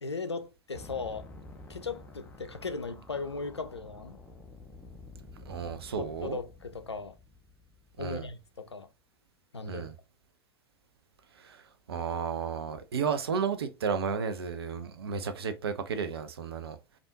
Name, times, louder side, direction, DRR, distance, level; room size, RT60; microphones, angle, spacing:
voice 1, 0.0-1.3 1.7-4.2 6.0-7.1 8.0-8.9 9.5-9.9, left 4 dB, 85° left, 0.5 m, -37 dB
sound 1, 0.7-8.8, left 2 dB, 10° left, 0.6 m, -50 dB
voice 2, 5.5-6.4 8.0-8.3 9.6-9.9 11.3-16.8, right 6 dB, 65° right, 0.6 m, -33 dB
3.4 x 2.5 x 2.6 m
figure-of-eight pair, 90°, 14 cm